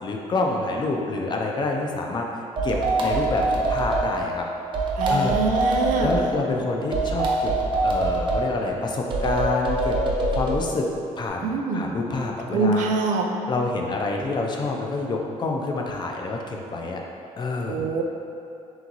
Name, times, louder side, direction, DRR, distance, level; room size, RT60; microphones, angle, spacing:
voice 1, 0.0-2.3 2.6-4.5 5.1-7.5 7.8-10.0 10.3-10.9 11.2-12.9 13.5-17.0 17.4-17.8, left 3 dB, 35° left, 1 dB, 0.5 m, -27 dB
sound 1, 2.6-4.1 4.7-6.2 6.9-8.4 9.1-10.6, right 2 dB, 40° right, 0.6 m, -23 dB
voice 2, 5.0-6.1 11.4-11.9 12.5-13.3 17.7-18.0, right 3 dB, 80° right, 2 dB, 0.5 m, -24 dB
3.5 x 3.0 x 3.9 m, 2.6 s
cardioid pair, 120°, 13 cm